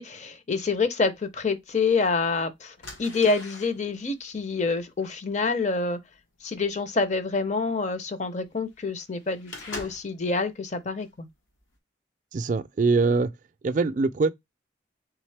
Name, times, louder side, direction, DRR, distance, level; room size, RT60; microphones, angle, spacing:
voice 1, 0.0-6.0 6.4-11.3, left 4 dB, 35° left, 0.6 m, -27 dB
sound 1, 1.3-1.4 2.2-2.3 2.8-10.3 10.7-11.1 11.5-11.7, left 2 dB, 85° left, 1.2 m, -44 dB
voice 2, 12.3-13.3 13.6-14.3, right 4 dB, 40° right, 0.3 m, -23 dB
3.6 x 3.3 x 3.3 m
head